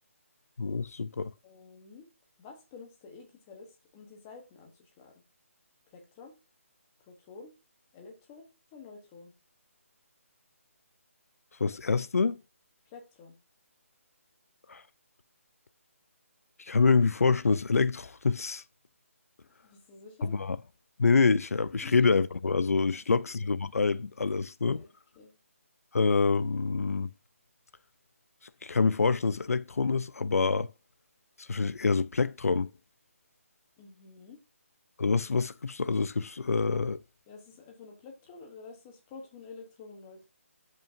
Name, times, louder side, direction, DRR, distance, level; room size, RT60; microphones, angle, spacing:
voice 1, 0.6-1.3 11.6-12.4 14.7-14.8 16.6-18.6 20.2-20.6 21.0-24.8 25.9-27.1 28.6-30.7 31.4-32.7 35.0-37.0, left 4 dB, 90° left, 0.5 m, -26 dB
voice 2, 1.4-2.1 2.4-5.1 5.9-6.3 7.1-7.5 7.9-9.3 12.8-13.4 19.6-20.4 21.8-22.0 22.9-23.3 24.7-25.3 33.8-34.4 37.3-40.2, left 4 dB, 10° left, 1.1 m, -50 dB
12.5 x 5.4 x 2.6 m
hypercardioid pair, 180°, 8 cm